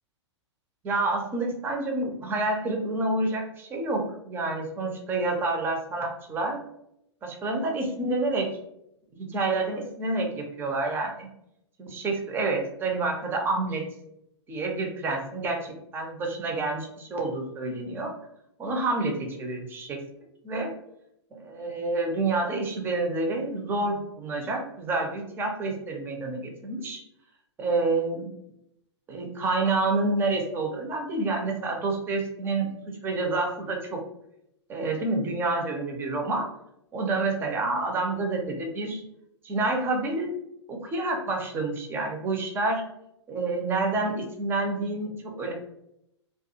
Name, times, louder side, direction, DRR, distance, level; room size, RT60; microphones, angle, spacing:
voice 1, 0.8-6.6 7.2-8.5 9.1-11.3 11.8-13.8 14.5-18.1 18.6-20.0 20.4-20.7 21.3-27.0 27.6-28.3 29.1-34.0 34.7-36.5 36.9-39.0 39.4-40.3 40.7-42.8 43.3-45.5, right 2 dB, 15° right, 1 dB, 0.5 m, -28 dB
2.4 x 2.3 x 2.6 m, 0.78 s
figure-of-eight pair, 110°, 15 cm